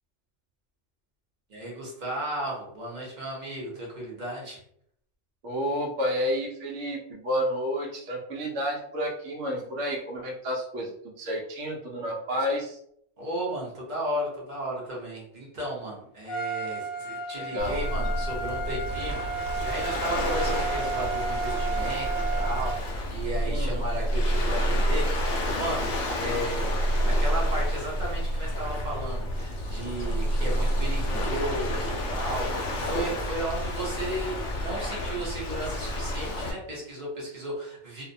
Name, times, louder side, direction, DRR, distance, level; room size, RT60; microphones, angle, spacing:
voice 1, 1.5-4.6 13.2-38.0, right 1 dB, 40° right, -4 dB, 0.8 m, -34 dB
voice 2, 5.4-12.8 17.4-17.8 23.5-23.8, equal, 70° right, -1 dB, 0.8 m, -30 dB
Trumpet, 16.3-22.8, right 4 dB, 85° left, 1.0 m, -33 dB
Waves surf, 17.6-36.5, equal, 60° left, 0.6 m, -29 dB
2.5 x 2.0 x 2.6 m, 0.70 s
omnidirectional pair, 1.3 m